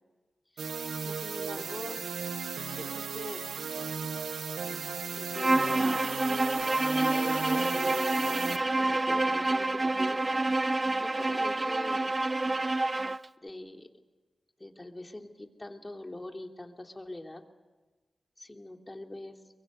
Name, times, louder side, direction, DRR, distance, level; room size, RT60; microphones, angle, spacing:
voice 1, 0.5-2.0 2.7-3.5 5.1-6.1 7.1-10.7 11.0-12.1 13.4-13.9 14.6-17.4 18.4-19.4, left 1 dB, 25° left, 3 dB, 3.1 m, -43 dB
sound 1, 0.6-8.6, right 6 dB, 90° right, 1.0 m, -36 dB
Bowed string instrument, 5.3-13.2, right 2 dB, 35° right, 0.7 m, -28 dB
23.0 x 22.5 x 8.2 m, 1.3 s
cardioid pair, 40°, 0 cm